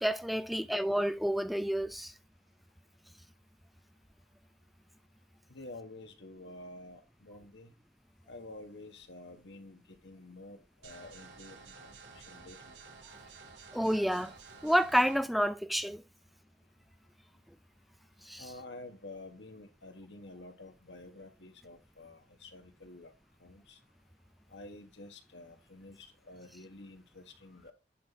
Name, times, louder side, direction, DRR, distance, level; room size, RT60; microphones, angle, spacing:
voice 1, 0.0-2.1 13.7-14.3 14.6-16.0 18.3-18.4, equal, ahead, 0.3 m, -29 dB
voice 2, 5.5-7.7 8.3-11.9 12.1-12.8 18.4-23.1 23.4-23.8 24.5-27.7, left 2 dB, 85° left, 1.6 m, -50 dB
sound 1, 10.8-15.2, right 4 dB, 80° right, 1.9 m, -52 dB
10.0 x 4.3 x 4.1 m
head